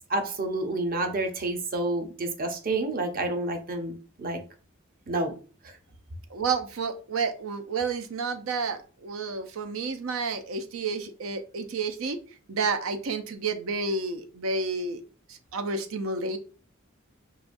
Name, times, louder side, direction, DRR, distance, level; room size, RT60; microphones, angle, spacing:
voice 1, 0.1-4.4 5.1-5.3, right 2 dB, 45° right, 5 dB, 0.6 m, -29 dB
voice 2, 6.3-12.2 12.5-15.0 15.3-16.4, right 4 dB, 90° right, 8 dB, 0.6 m, -30 dB
4.8 x 2.4 x 2.5 m, 0.37 s
head